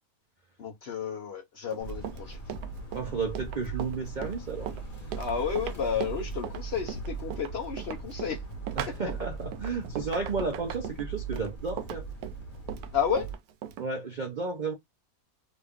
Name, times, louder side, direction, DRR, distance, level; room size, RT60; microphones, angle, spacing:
voice 1, 0.6-2.4 5.2-8.4 8.9-9.0 12.9-13.3, left 7 dB, 55° left, 0.7 m, -31 dB
Run, 1.7-13.9, right 9 dB, 90° right, 1.1 m, -39 dB
sound 1, 1.8-13.3, right 4 dB, 35° left, 1.3 m, -39 dB
voice 2, 2.9-4.7 8.8-12.1 13.8-14.7, right 4 dB, 65° right, 0.4 m, -33 dB
3.0 x 2.4 x 3.4 m
omnidirectional pair, 1.6 m